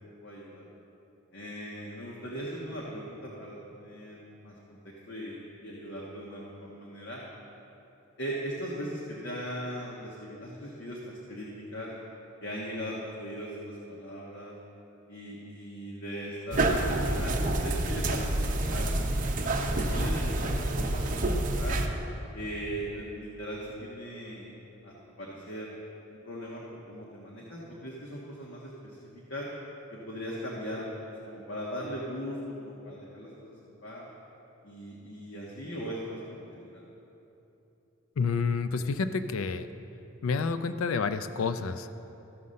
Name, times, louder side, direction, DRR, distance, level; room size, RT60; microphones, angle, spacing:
voice 1, 0.2-0.7 1.3-4.8 5.1-7.2 8.2-11.9 12.4-14.5 15.1-17.3 17.6-19.0 19.4-21.8 22.3-24.5 24.8-25.7 26.1-29.0 29.3-29.5 29.9-34.1 34.6-36.8, equal, 55° left, -5 dB, 1.4 m, -39 dB
sound 1, 16.5-21.9, right 1 dB, 40° right, 0.8 m, -28 dB
voice 2, 38.2-39.7 40.2-41.9, left 4 dB, 80° left, 11 dB, 0.4 m, -29 dB
14.0 x 5.6 x 6.4 m, 3.0 s
head